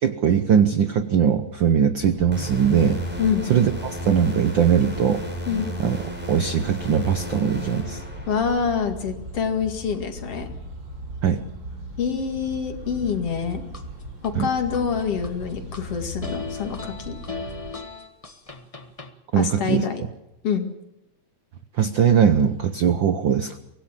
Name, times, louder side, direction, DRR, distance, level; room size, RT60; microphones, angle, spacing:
voice 1, 0.0-3.0 3.5-3.7 4.1-5.2 5.8-6.0 6.3-8.0 11.2-11.4 14.3-14.5 19.3-19.9 21.8-23.6, right 8 dB, 75° right, 10 dB, 1.1 m, -20 dB
nature and the noise from the town, 2.0-17.7, equal, 40° right, 5.1 m, -38 dB
sound 1, 2.3-8.8, equal, 5° right, 5.8 m, -34 dB
voice 2, 8.3-10.5 12.0-13.6 14.2-17.2 19.3-20.0 20.4-20.7, left 6 dB, 55° left, 5 dB, 3.1 m, -26 dB
sound 2, 13.3-14.3 14.7-15.8 16.2-19.1, left 4 dB, 35° left, 0.5 m, -37 dB
24.0 x 17.5 x 7.4 m, 0.92 s
omnidirectional pair, 3.4 m